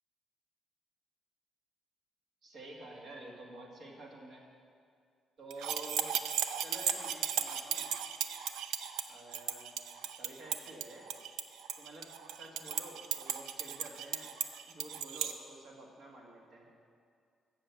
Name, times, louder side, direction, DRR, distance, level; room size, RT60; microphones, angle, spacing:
voice 1, 2.4-4.4 5.4-6.1 6.6-7.9 9.1-9.7 10.2-11.1 11.8-12.1 12.4-14.3 14.7-16.7, right 2 dB, 60° right, -1 dB, 1.9 m, -49 dB
sound 1, 5.5-15.3, right 9 dB, 90° right, 0.4 m, -36 dB
7.6 x 7.0 x 7.0 m, 2.2 s
cardioid pair, 90°, 0 cm